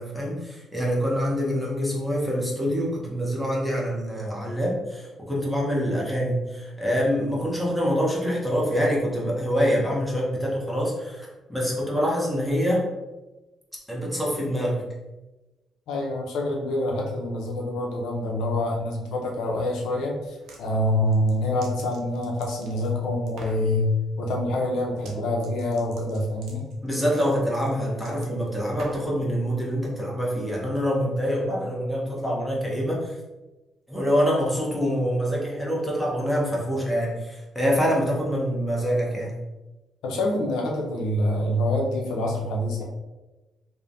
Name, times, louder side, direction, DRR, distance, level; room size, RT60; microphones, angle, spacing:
voice 1, 0.0-12.8 13.9-14.8 26.8-33.1 33.9-39.4, equal, ahead, -5 dB, 0.9 m, -25 dB
voice 2, 15.9-23.9 24.2-26.6 40.0-42.8, left 1 dB, 90° left, 0 dB, 0.5 m, -26 dB
sound 1, 20.2-20.6 21.1-22.9 23.3-23.7 24.9-25.2 25.4-29.2, right 2 dB, 75° right, 0.5 m, -46 dB
3.1 x 2.1 x 2.6 m, 1.1 s
cardioid pair, 90°, 0 cm